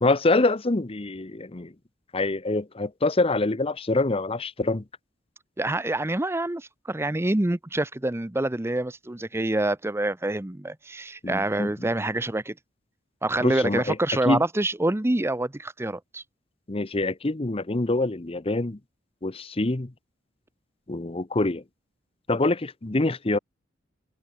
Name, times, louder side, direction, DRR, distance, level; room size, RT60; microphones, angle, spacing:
voice 1, 0.0-1.7 2.1-4.8 11.2-11.9 13.4-14.0 14.3-14.4 16.7-18.8 19.2-19.9 20.9-21.6 22.3-23.4, left 2 dB, 30° left, 0.8 m, -25 dB
voice 2, 5.6-12.5 13.2-16.2, right 1 dB, 15° right, 0.6 m, -26 dB
open air
head